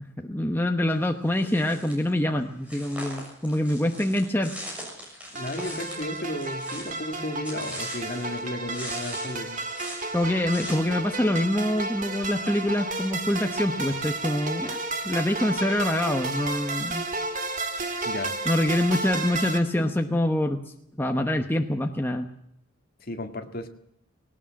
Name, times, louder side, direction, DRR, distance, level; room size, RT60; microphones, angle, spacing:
voice 1, 0.2-4.5 10.1-14.8 15.0-17.0 18.4-20.6 21.0-22.3, left 1 dB, 10° left, 4 dB, 1.0 m, -25 dB
sound 1, 1.3-2.1 2.6-8.4 8.7-10.8, equal, 5° right, 6.9 m, -41 dB
voice 2, 5.3-9.6 18.0-18.4 23.0-23.7, left 1 dB, 45° left, 6 dB, 1.9 m, -34 dB
sound 2, 5.3-19.6, right 2 dB, 35° right, 2.0 m, -32 dB
19.0 x 18.5 x 7.5 m, 0.75 s
head